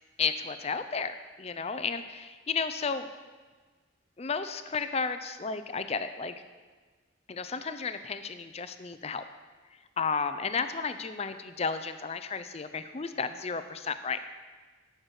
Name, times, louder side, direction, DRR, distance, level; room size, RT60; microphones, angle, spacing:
voice 1, 0.2-3.1 4.2-6.3 7.3-9.2 10.0-14.2, left 5 dB, 35° left, 10 dB, 0.5 m, -33 dB
11.5 x 6.6 x 4.8 m, 1.4 s
head